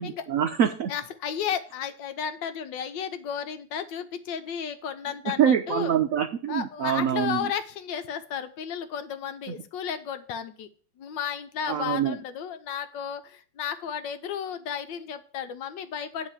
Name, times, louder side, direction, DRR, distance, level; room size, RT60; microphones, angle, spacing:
voice 1, 0.0-0.9 5.3-7.5 11.7-12.2, right 9 dB, 85° right, 7 dB, 0.7 m, -25 dB
voice 2, 0.9-6.0 6.5-10.7 11.0-16.3, left 8 dB, 70° left, 10 dB, 1.4 m, -33 dB
10.0 x 3.4 x 7.1 m, 0.43 s
omnidirectional pair, 2.2 m